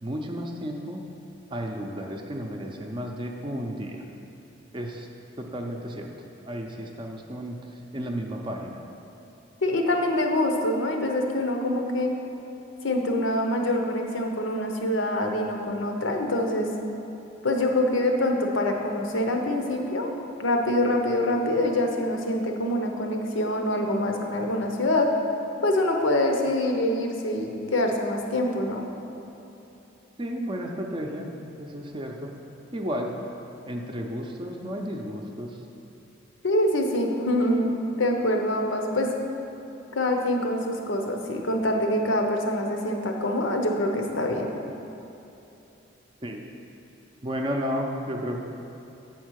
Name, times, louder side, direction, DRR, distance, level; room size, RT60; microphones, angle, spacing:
voice 1, 0.0-1.0 1.5-4.0 4.7-5.1 5.4-6.1 6.5-8.8 30.2-31.3 31.6-32.3 32.7-33.1 33.7-35.6 46.2-46.5 47.2-48.4, equal, 25° right, 1 dB, 0.5 m, -33 dB
voice 2, 9.6-12.1 12.8-16.7 17.4-20.1 20.4-25.1 25.6-28.8 36.4-39.1 39.9-44.5, left 1 dB, 85° left, 3 dB, 0.8 m, -25 dB
8.1 x 4.4 x 6.3 m, 3.0 s
head